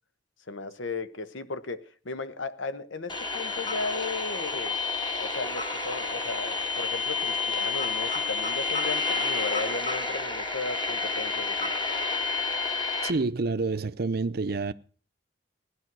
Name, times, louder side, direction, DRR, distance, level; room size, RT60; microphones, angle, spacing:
voice 1, 0.5-4.8 5.2-11.7, left 3 dB, 85° left, 1.1 m, -35 dB
sound 1, 3.1-13.1, left 3 dB, 25° left, 1.9 m, -29 dB
voice 2, 13.0-14.7, right 3 dB, 55° right, 0.6 m, -28 dB
16.0 x 11.0 x 6.2 m
head